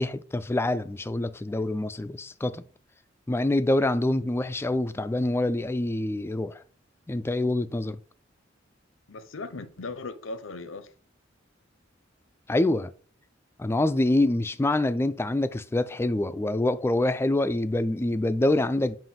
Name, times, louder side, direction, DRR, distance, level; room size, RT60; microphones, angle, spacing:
voice 1, 0.0-2.6 3.3-6.6 7.1-8.0 12.5-12.9 13.6-19.0, left 1 dB, 15° left, 0.3 m, -26 dB
voice 2, 9.1-10.9 18.5-18.7, left 3 dB, 85° left, 0.7 m, -38 dB
7.5 x 2.5 x 5.7 m
head